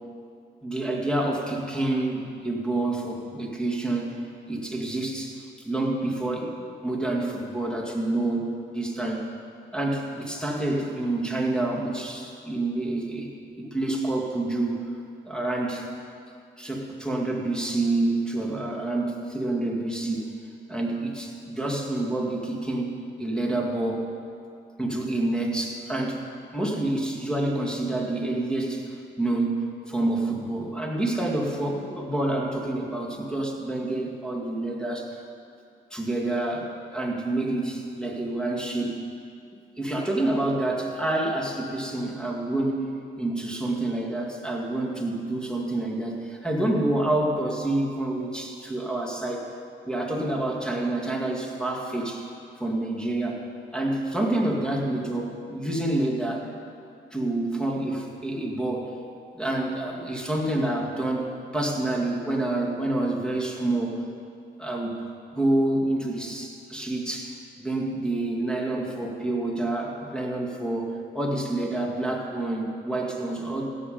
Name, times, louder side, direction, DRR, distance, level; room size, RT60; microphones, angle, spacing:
voice 1, 0.6-4.2 4.5-5.4 5.6-9.3 9.7-13.3 13.6-14.9 15.3-15.9 16.6-20.3 20.7-24.1 24.8-26.2 26.5-35.1 35.9-39.0 39.8-42.8 43.2-49.5 49.8-52.3 52.6-53.5 53.7-56.5 57.1-59.0 59.3-64.0 64.6-65.0 65.3-73.7, right 2 dB, 5° left, -1 dB, 2.2 m, -28 dB
16.5 x 7.4 x 5.2 m, 2.4 s
cardioid pair, 90°, 20 cm